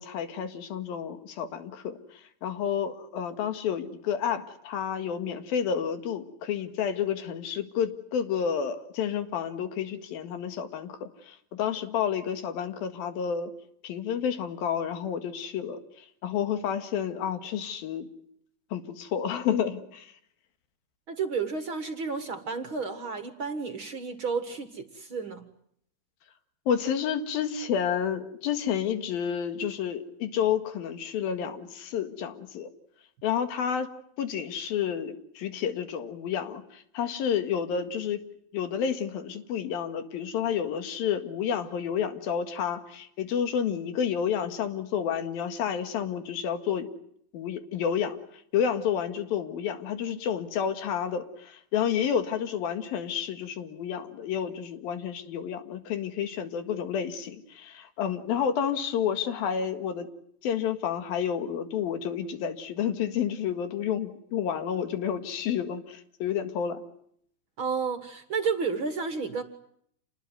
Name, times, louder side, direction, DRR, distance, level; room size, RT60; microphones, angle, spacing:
voice 1, 0.0-2.0 2.4-13.5 13.8-18.1 18.7-20.1 26.7-32.7 33.2-33.9 34.2-38.2 38.5-46.9 47.3-48.2 48.5-60.1 60.4-66.8, left 8 dB, 85° left, 9 dB, 3.7 m, -30 dB
voice 2, 21.1-25.5 67.6-69.4, right 5 dB, 45° right, 9 dB, 2.0 m, -31 dB
28.0 x 20.5 x 9.4 m, 0.69 s
omnidirectional pair, 4.0 m